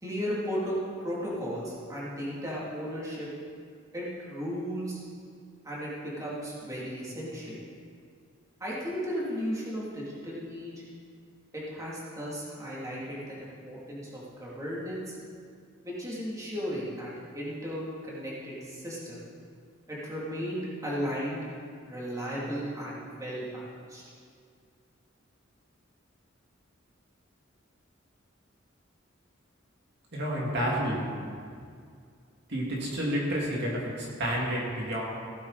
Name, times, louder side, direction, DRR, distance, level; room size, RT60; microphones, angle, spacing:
voice 1, 0.0-0.8 1.0-3.3 3.9-5.0 5.6-7.6 8.6-10.7 11.5-15.2 15.8-19.3 19.9-21.4 21.9-24.0, equal, 15° right, -7 dB, 2.8 m, -35 dB
voice 2, 30.1-31.1 32.5-35.0, equal, 60° right, -4 dB, 2.4 m, -30 dB
16.5 x 9.7 x 4.2 m, 2.2 s
head